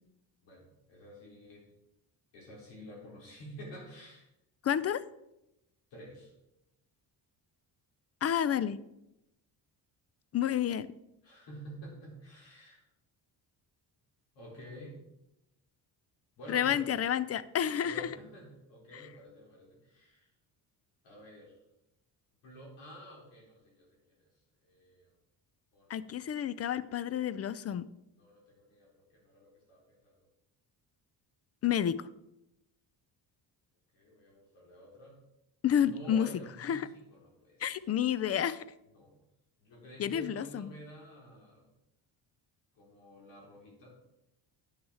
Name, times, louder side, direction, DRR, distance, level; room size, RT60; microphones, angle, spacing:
voice 1, 0.4-1.7 2.3-4.3 5.9-6.3 11.2-12.9 14.3-15.0 16.4-17.0 17.8-20.3 21.0-21.6 22.4-24.3 24.6-25.1 25.7-26.1 28.2-30.1 33.9-35.2 35.8-37.8 38.9-39.2 39.6-41.7 42.7-43.9, equal, 85° left, -3 dB, 4.0 m, -50 dB
voice 2, 4.6-5.0 8.2-8.8 10.3-10.9 16.5-18.1 25.9-27.9 31.6-32.0 35.6-36.3 36.6-36.9 37.6-38.6 40.0-40.7, left 9 dB, 35° left, 17 dB, 0.4 m, -30 dB
9.9 x 6.2 x 4.8 m, 0.90 s
cardioid pair, 105°, 43 cm